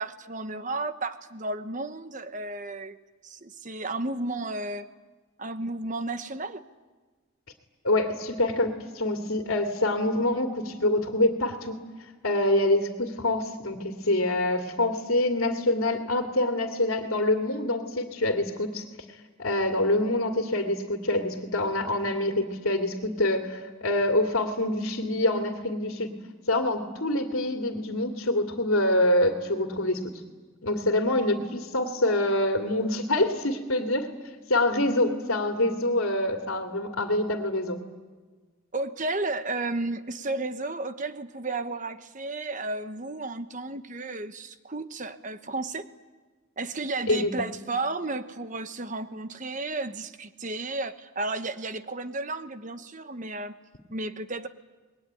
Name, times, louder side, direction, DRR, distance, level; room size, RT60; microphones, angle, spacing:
voice 1, 0.0-3.0 3.2-4.9 5.4-6.6 38.7-45.8 46.6-53.5 53.9-54.5, right 2 dB, 35° right, 10 dB, 1.1 m, -33 dB
voice 2, 7.8-11.7 12.2-18.8 19.4-26.1 26.5-30.0 30.6-34.1 34.5-37.8 47.1-47.3, left 1 dB, 75° left, 4 dB, 2.5 m, -25 dB
27.0 x 21.0 x 9.4 m, 1.3 s
head